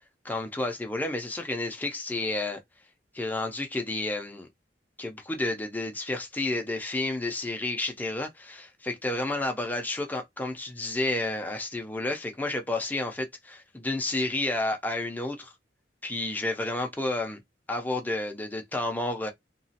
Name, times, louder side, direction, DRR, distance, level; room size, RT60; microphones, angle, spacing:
voice 1, 0.2-2.6 3.1-4.5 5.0-15.5 16.0-17.4 17.7-19.3, left 2 dB, 10° left, 0.5 m, -31 dB
3.0 x 2.3 x 2.8 m
head